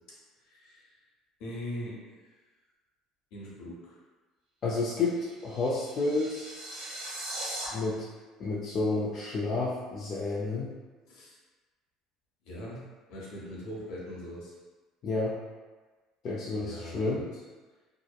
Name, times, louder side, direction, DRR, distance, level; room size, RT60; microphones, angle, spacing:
voice 1, 0.1-0.9 1.4-2.0 3.3-3.9 11.1-11.4 12.5-12.8 13.1-14.5 16.6-17.2, equal, 75° left, -5 dB, 0.8 m, -41 dB
voice 2, 4.6-6.5 7.7-8.1 8.4-10.7 15.0-15.4 16.2-17.2, left 3 dB, 45° left, -5 dB, 0.4 m, -30 dB
sound 1, 5.0-7.7, right 1 dB, 80° right, 0.8 m, -40 dB
2.8 x 2.0 x 2.2 m, 1.3 s
supercardioid pair, 100°, 0 cm